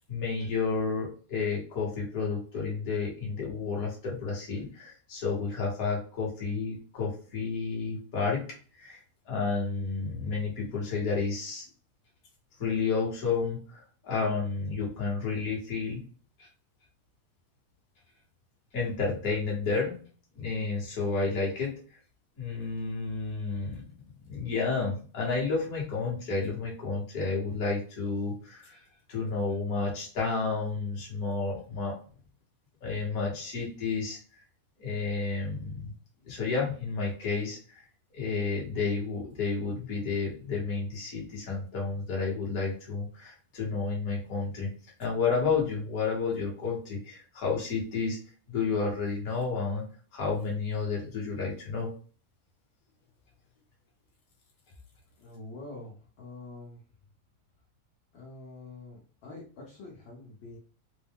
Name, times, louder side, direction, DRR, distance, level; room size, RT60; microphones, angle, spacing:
voice 1, 0.1-8.4 8.8-11.6 12.6-16.0 16.4-16.5 18.7-20.0 20.3-21.7 22.4-23.8 24.2-28.8 29.1-31.9 32.8-34.2 34.8-35.9 36.2-37.8 38.1-44.7 45.0-48.2 48.5-49.8 50.1-51.9, left 4 dB, 40° left, -3 dB, 1.3 m, -31 dB
voice 2, 55.2-56.8 58.1-60.6, left 2 dB, 60° left, -5 dB, 1.3 m, -45 dB
4.6 x 2.1 x 3.6 m, 0.40 s
omnidirectional pair, 3.3 m